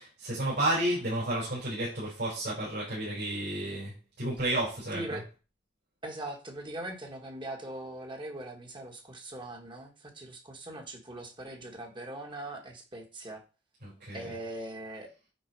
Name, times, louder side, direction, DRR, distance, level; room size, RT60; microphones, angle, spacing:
voice 1, 0.0-5.2 13.8-14.3, right 1 dB, 60° right, -7 dB, 4.4 m, -32 dB
voice 2, 4.9-5.2 6.0-13.4 14.1-15.1, right 1 dB, 25° right, 2 dB, 1.6 m, -41 dB
9.3 x 4.1 x 4.6 m, 0.33 s
head